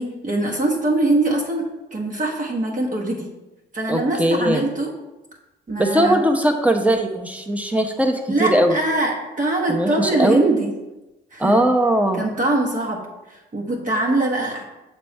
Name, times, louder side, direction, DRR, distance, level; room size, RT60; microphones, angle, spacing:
voice 1, 0.0-3.3 3.7-4.9 5.7-6.2 8.3-10.7 11.3-11.6 12.1-13.0 13.3-14.6, right 2 dB, 40° right, -1 dB, 1.2 m, -22 dB
voice 2, 3.9-4.6 5.8-8.7 9.7-10.5 11.4-12.2, right 1 dB, 5° right, 5 dB, 0.9 m, -19 dB
6.7 x 4.3 x 3.5 m, 1.0 s
supercardioid pair, 55°, 21 cm